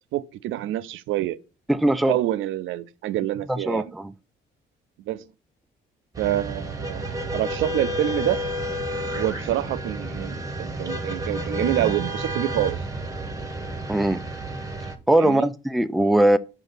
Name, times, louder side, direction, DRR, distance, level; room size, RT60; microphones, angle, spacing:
voice 1, 0.1-1.4 2.1-3.9 5.1-5.2 6.2-8.4 9.1-12.8 15.1-15.5, right 13 dB, 85° right, 0.4 m, -27 dB
voice 2, 1.7-2.1 3.5-4.1 13.9-14.2 15.1-16.4, right 1 dB, ahead, 0.3 m, -20 dB
sound 1, 6.1-15.0, right 1 dB, 15° right, 1.0 m, -30 dB
5.2 x 4.9 x 4.0 m
cardioid pair, 90°, 20 cm